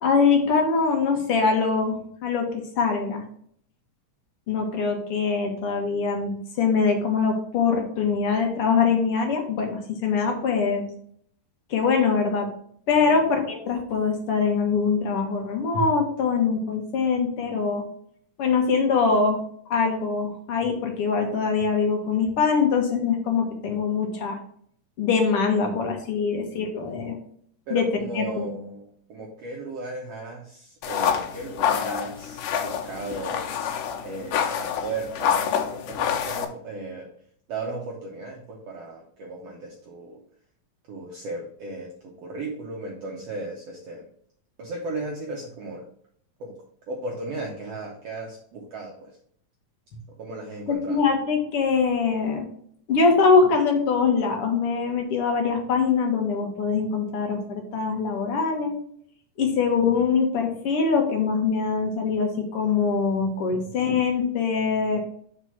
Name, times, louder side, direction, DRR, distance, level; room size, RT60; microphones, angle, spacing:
voice 1, 0.0-3.2 4.5-10.9 11.7-12.5 12.9-17.9 18.4-19.4 19.7-24.4 25.0-27.1 27.7-27.9 28.1-28.5 50.7-52.4 52.9-58.7 59.4-65.0, left 5 dB, 60° left, 3 dB, 1.7 m, -23 dB
voice 2, 27.7-33.5 34.0-37.1 37.5-40.2 40.9-44.0 44.6-45.9 46.4-46.6 46.9-49.1 50.2-51.0 63.5-63.7 64.9-65.0, right 2 dB, 65° right, -1 dB, 1.7 m, -36 dB
sound 1, 30.8-36.5, left 8 dB, 80° left, 2.4 m, -27 dB
4.8 x 4.8 x 5.8 m, 0.63 s
omnidirectional pair, 3.8 m